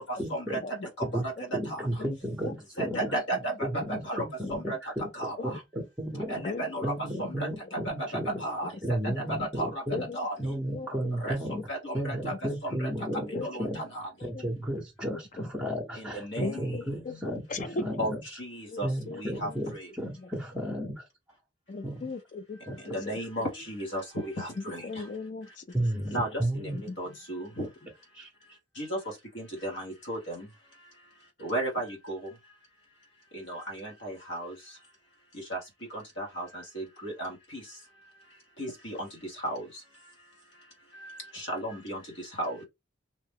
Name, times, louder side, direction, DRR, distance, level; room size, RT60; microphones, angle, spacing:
voice 1, 0.0-0.6 1.0-1.2 1.5-3.2 3.6-5.1 5.4-6.4 6.8-8.4 8.8-10.0 10.4-11.7 11.9-13.8 14.2-18.2 18.8-21.1 21.8-22.1 22.7-22.8 25.7-26.8 28.1-28.3 28.8-28.9, equal, 5° right, 0.8 m, -33 dB
voice 2, 1.0-1.3 1.7-1.8 2.8-4.2 4.5-4.8 5.1-5.5 6.3-6.9 7.2-7.5 8.0-8.1 8.4-8.7 9.2-9.7 10.1-10.3 11.2-11.3 11.7-12.3 13.4-14.1 16.0-16.7 18.0-18.1 18.4-19.9 22.8-24.8 26.1-27.7 28.4-30.9 31.4-32.6 33.3-34.8 35.3-40.1 40.9-42.6, right 1 dB, 65° left, 1.1 m, -35 dB
voice 3, 2.8-3.6 3.9-4.0 4.4-4.8 6.4-6.7 8.6-8.7 9.1-9.2 9.9-11.1 12.3-12.4 13.3-13.5 14.2-14.5 15.1-15.2 16.4-17.9 18.7-19.6 20.2-20.3 21.7-23.4 24.6-25.8 26.7-27.2, left 3 dB, 40° left, 0.4 m, -39 dB
2.8 x 2.1 x 3.3 m
head